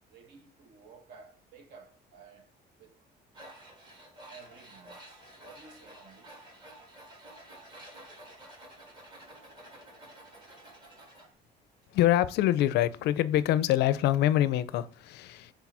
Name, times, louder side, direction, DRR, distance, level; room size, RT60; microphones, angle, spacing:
voice 1, 0.1-3.0 4.3-6.4, right 5 dB, 65° right, 1.3 m, -54 dB
Tools, 3.3-11.3, right 1 dB, 25° right, 1.4 m, -51 dB
voice 2, 11.9-15.5, left 13 dB, 65° left, 0.4 m, -25 dB
4.8 x 3.8 x 5.5 m
cardioid pair, 180°, 18 cm